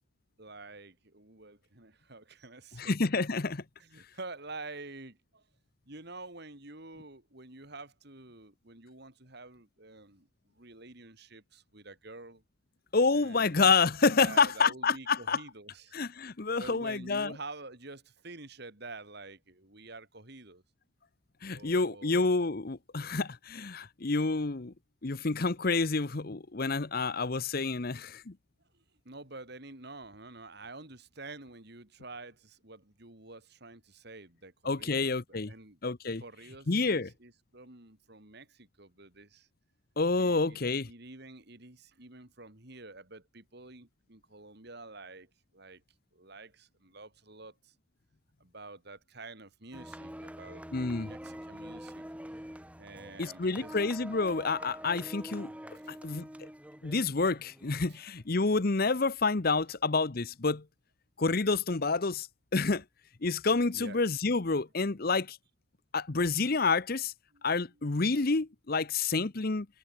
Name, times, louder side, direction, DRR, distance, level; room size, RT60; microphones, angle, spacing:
voice 1, 0.4-2.9 3.8-5.4 5.9-10.3 10.6-12.4 13.1-13.8 14.2-16.0 16.6-20.6 21.5-22.2 28.7-35.8 36.2-39.5 40.2-40.6 40.9-45.8 46.1-47.7 48.4-52.0 52.8-53.8 55.8-55.9 63.7-64.0 67.3-67.6, right 2 dB, 50° right, 3.1 m, -48 dB
voice 2, 2.8-3.6 12.9-15.4 15.9-17.4 21.4-24.7 25.0-28.3 34.6-35.5 35.8-36.2 36.7-37.1 40.0-40.9 50.7-51.1 53.2-55.5 55.9-56.3 56.8-60.6 61.2-62.8 63.2-65.4 65.9-67.1 67.4-69.7, left 4 dB, 45° left, 0.8 m, -28 dB
sound 1, 49.7-58.0, equal, 5° right, 1.8 m, -46 dB
head